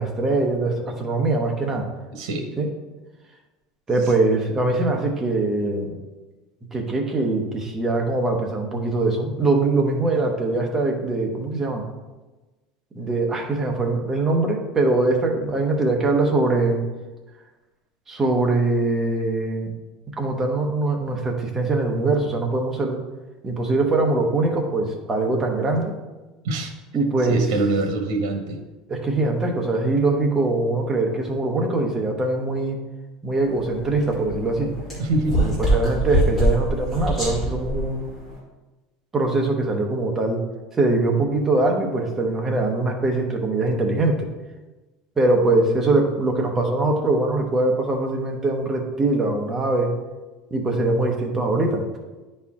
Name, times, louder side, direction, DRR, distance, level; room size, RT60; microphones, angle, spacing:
voice 1, 0.0-1.9 2.6-2.7 3.9-6.0 6.7-11.8 12.9-16.8 18.1-19.7 20.2-23.0 23.4-25.9 26.9-27.5 28.9-32.8 33.2-34.7 35.4-38.1 39.1-40.4 40.8-44.3 45.2-49.9 50.5-51.8, right 2 dB, 15° right, 1 dB, 0.8 m, -22 dB
voice 2, 2.1-2.5 26.4-26.7 27.3-28.6 35.0-35.5, right 2 dB, 90° right, 4 dB, 1.1 m, -24 dB
sound 1, 33.4-38.4, right 1 dB, 5° left, 2.1 m, -25 dB
9.7 x 4.3 x 3.6 m, 1.2 s
cardioid pair, 175°, 2 cm